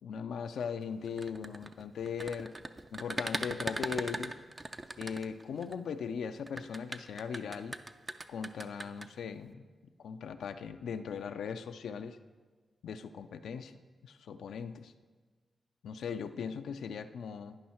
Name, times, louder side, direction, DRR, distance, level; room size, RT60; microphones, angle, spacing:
voice 1, 0.0-2.5 2.9-4.3 5.0-7.8 8.3-9.6 10.0-12.2 12.8-13.7 14.0-14.9 15.8-17.6, left 6 dB, 80° left, 9 dB, 0.4 m, -39 dB
sound 1, 1.1-5.7 6.5-9.1, right 2 dB, 35° right, 0.5 m, -39 dB
10.5 x 5.4 x 4.3 m, 1.4 s
supercardioid pair, 45°, 0 cm